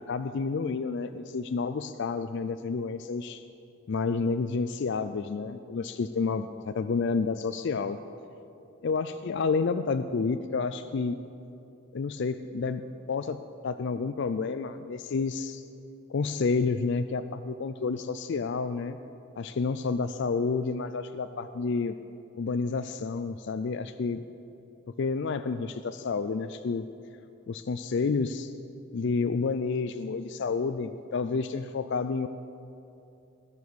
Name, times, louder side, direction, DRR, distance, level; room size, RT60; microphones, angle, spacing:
voice 1, 0.0-3.4 3.9-8.0 8.8-11.2 11.9-12.8 13.1-15.6 16.1-19.0 19.4-21.9 22.4-24.2 25.0-26.9 27.5-28.5 28.9-32.3, left 4 dB, 55° left, 10 dB, 0.4 m, -30 dB
20.0 x 6.9 x 6.2 m, 2.8 s
head